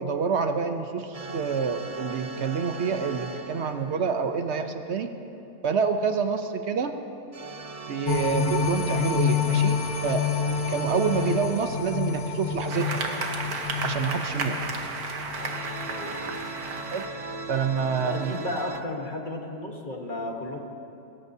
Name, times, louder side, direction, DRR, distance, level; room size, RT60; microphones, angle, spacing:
voice 1, 0.0-5.1 5.6-6.9 7.9-10.3 10.7-13.0 13.8-14.6 16.9-17.0 17.5-18.3, right 6 dB, 60° right, 7 dB, 0.9 m, -27 dB
sound 1, 1.1-5.0 7.3-12.8 15.3-18.8, right 3 dB, 40° right, 0.5 m, -39 dB
sound 2, 8.1-16.5 16.9-17.0, left 7 dB, 65° left, 0.5 m, -29 dB
sound 3, 12.7-17.1 17.8-18.6, right 4 dB, 80° right, 1.7 m, -33 dB
voice 2, 18.0-20.6, left 2 dB, 35° left, 1 dB, 1.4 m, -33 dB
28.0 x 14.5 x 2.8 m, 2.8 s
omnidirectional pair, 1.6 m